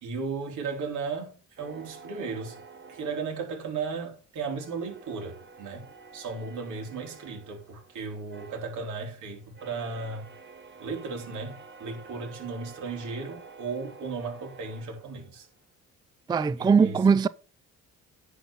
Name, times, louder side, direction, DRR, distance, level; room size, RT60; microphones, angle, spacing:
voice 1, 0.0-2.6 2.9-10.3 10.8-15.5 16.6-17.0, right 4 dB, 85° right, 3.2 m, -35 dB
sound 1, 1.6-4.0 4.4-15.6, right 4 dB, 40° right, 1.6 m, -50 dB
voice 2, 16.3-17.3, right 5 dB, 15° right, 0.3 m, -20 dB
10.0 x 4.0 x 7.0 m
cardioid pair, 90°, 30 cm